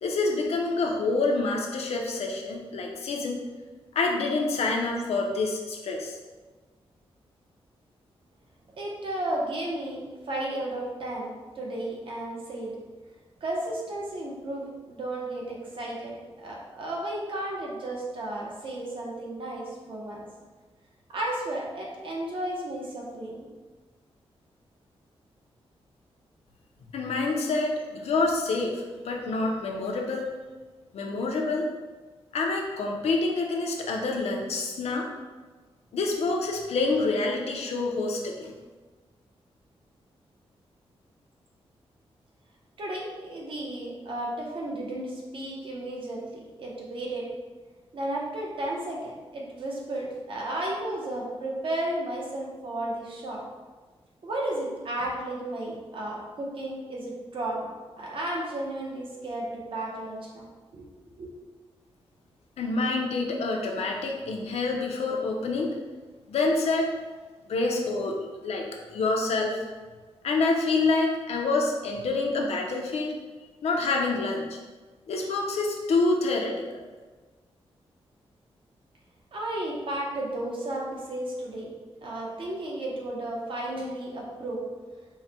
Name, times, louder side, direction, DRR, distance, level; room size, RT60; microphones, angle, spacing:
voice 1, 0.0-3.4 3.9-6.2 26.9-30.3 30.9-31.7 32.3-35.1 35.9-38.5 62.6-65.7 66.3-66.9 67.5-69.6 70.2-73.2 73.6-74.6 75.1-76.8, left 3 dB, 80° left, 0 dB, 0.7 m, -27 dB
voice 2, 8.7-12.7 13.4-16.1 16.4-20.2 21.1-23.5 42.8-47.2 47.9-53.4 54.2-60.5 60.7-61.3 79.3-81.7 82.0-84.6, right 1 dB, 55° right, -3 dB, 0.9 m, -33 dB
4.7 x 2.2 x 4.2 m, 1.3 s
wide cardioid pair, 160°, 10 cm